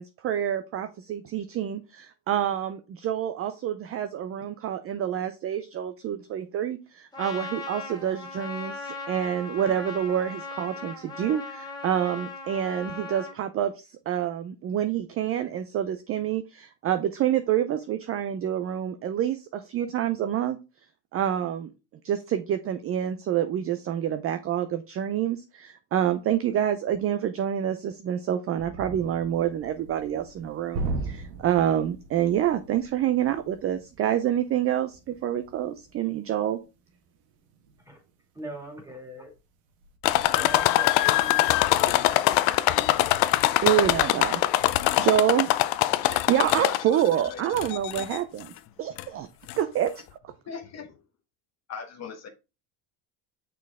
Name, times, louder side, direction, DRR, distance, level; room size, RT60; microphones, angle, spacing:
voice 1, 0.0-20.6 21.1-21.7 22.0-36.6 43.6-44.4 45.0-45.5 46.0-48.5 48.8-49.3 49.6-50.0, right 10 dB, 30° right, 0.4 m, -27 dB
Trumpet, 7.1-13.4, left 4 dB, 10° left, 1.9 m, -38 dB
sound 1, 28.6-38.3 38.6-38.8 39.3-40.0, right 3 dB, 75° right, 1.4 m, -39 dB
voice 2, 38.3-39.3 40.4-42.6, equal, 5° right, 2.1 m, -41 dB
sound 2, 40.0-47.1 47.6-48.2 49.0-49.1 49.5-49.6, left 16 dB, 80° left, 0.6 m, -23 dB
voice 3, 46.6-47.0 47.3-47.4 50.5-51.0 51.7-52.3, left 6 dB, 35° left, 1.0 m, -39 dB
6.1 x 4.5 x 3.5 m
cardioid pair, 125°, 47 cm